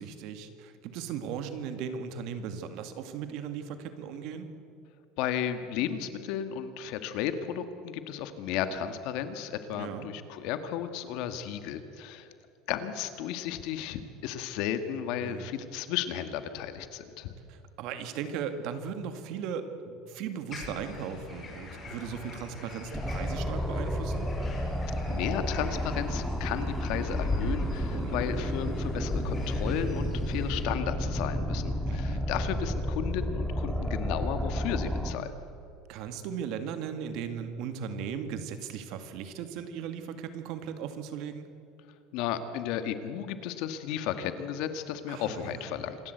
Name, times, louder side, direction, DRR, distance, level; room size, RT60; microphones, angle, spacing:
voice 1, 0.0-4.5 9.7-10.1 15.2-15.5 17.5-24.3 27.9-28.2 28.4-28.5 31.8-32.2 35.9-41.5 45.1-45.7, right 7 dB, 60° right, 9 dB, 2.1 m, -37 dB
voice 2, 5.2-12.3 12.7-17.3 25.1-35.3 42.1-46.0, left 9 dB, 65° left, 10 dB, 1.7 m, -34 dB
sound 1, 20.5-30.6, left 2 dB, 25° left, 5.4 m, -39 dB
sound 2, 22.9-35.1, equal, ahead, 1.9 m, -31 dB
26.5 x 13.0 x 8.0 m, 2.6 s
supercardioid pair, 135°, 0 cm